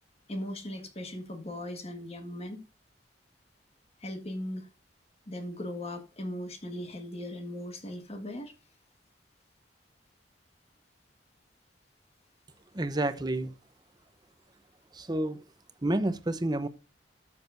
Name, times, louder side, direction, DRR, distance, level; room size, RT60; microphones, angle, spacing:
voice 1, 0.3-2.6 4.0-4.7 5.3-8.5, left 1 dB, 35° left, 1.7 m, -38 dB
voice 2, 12.7-13.5 14.9-15.4 15.8-16.7, right 1 dB, 25° right, 0.8 m, -29 dB
12.5 x 7.2 x 2.6 m
head